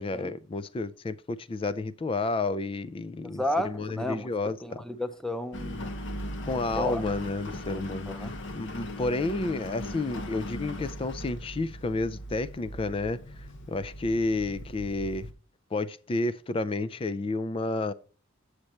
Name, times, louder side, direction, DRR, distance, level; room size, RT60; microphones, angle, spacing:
voice 1, 0.0-4.6 6.4-13.2 13.7-15.3 15.7-17.9, left 2 dB, 25° left, 0.4 m, -31 dB
voice 2, 3.2-5.9 6.8-7.0 7.7-8.3, left 1 dB, ahead, 0.7 m, -33 dB
Engine, 5.5-15.3, left 1 dB, 60° left, 1.0 m, -38 dB
8.4 x 6.6 x 4.4 m
head